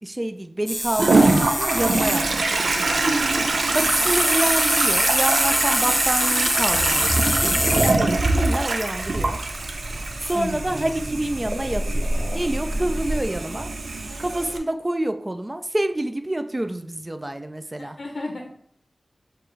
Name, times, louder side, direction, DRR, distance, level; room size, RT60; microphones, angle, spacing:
voice 1, 0.0-2.7 3.7-9.4 10.2-12.1 12.3-13.7 14.2-18.0, right 1 dB, 25° right, 8 dB, 0.4 m, -27 dB
sound 1, 0.7-2.2 3.7-7.9 9.2-9.3 9.5-13.3, equal, 10° right, 0.9 m, -25 dB
Toilet flush, 1.0-14.6, right 2 dB, 85° right, 0.5 m, -23 dB
voice 2, 10.3-10.7 17.8-18.6, left 2 dB, 65° left, 1 dB, 0.6 m, -33 dB
6.7 x 2.5 x 3.1 m, 0.69 s
wide cardioid pair, 75°, 0 cm